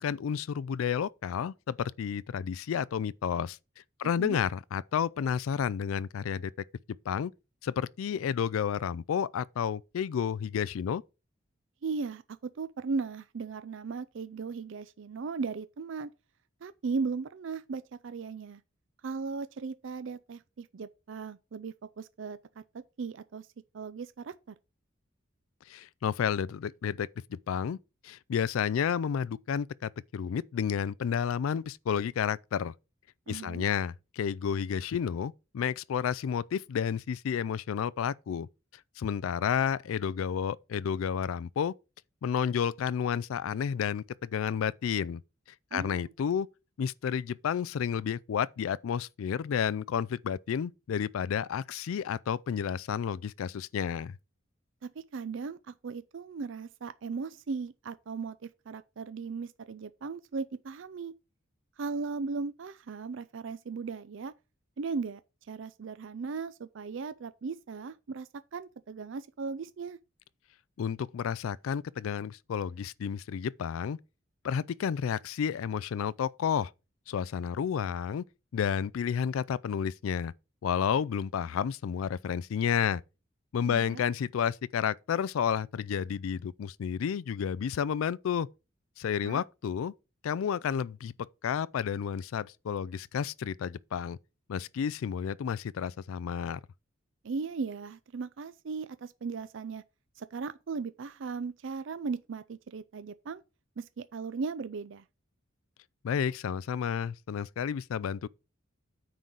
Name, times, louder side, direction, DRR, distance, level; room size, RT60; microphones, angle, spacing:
voice 1, 0.0-3.6 4.0-6.5 7.1-7.3 7.6-11.0 25.7-27.8 28.0-32.7 33.3-38.5 39.0-41.7 42.2-45.2 45.7-46.5 46.8-54.2 70.8-74.0 74.4-76.7 77.1-78.2 78.5-80.3 80.6-83.0 83.5-88.5 89.0-89.9 90.2-94.2 94.5-96.6 106.0-108.3, left 7 dB, 90° left, 0.3 m, -31 dB
voice 2, 11.8-16.1 16.6-18.6 19.0-22.6 23.0-23.5 23.7-24.5 33.3-33.7 45.7-46.0 54.8-61.1 61.8-64.3 64.8-65.2 65.5-70.0 83.6-84.0 89.2-89.4 97.2-99.8 100.2-103.4 103.8-105.0, right 4 dB, 65° right, 0.4 m, -37 dB
9.2 x 3.9 x 6.1 m
head